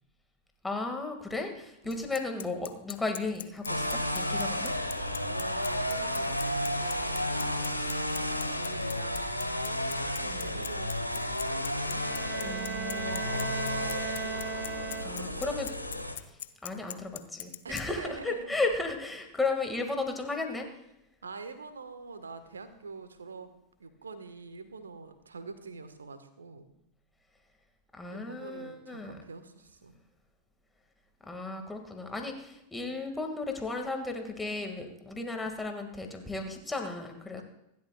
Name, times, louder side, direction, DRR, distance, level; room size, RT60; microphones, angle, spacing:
voice 1, 0.6-4.8 10.2-10.5 12.4-13.2 15.0-15.7 16.6-20.7 27.9-29.2 31.3-37.4, left 3 dB, 10° left, 4 dB, 2.1 m, -34 dB
Bicycle, 1.9-17.8, left 12 dB, 60° left, 0.5 m, -41 dB
sound 1, 3.7-16.2, left 1 dB, 90° left, 1.2 m, -32 dB
voice 2, 5.2-8.0 8.5-9.5 10.2-11.3 11.6-14.1 15.0-15.5 17.6-18.6 21.2-23.5 23.8-26.7 28.1-30.0 32.8-33.1, right 4 dB, 70° right, 10 dB, 1.4 m, -45 dB
Bowed string instrument, 11.9-15.5, right 8 dB, 20° right, 0.5 m, -39 dB
26.0 x 12.5 x 2.4 m, 0.83 s
figure-of-eight pair, 90°, 0 cm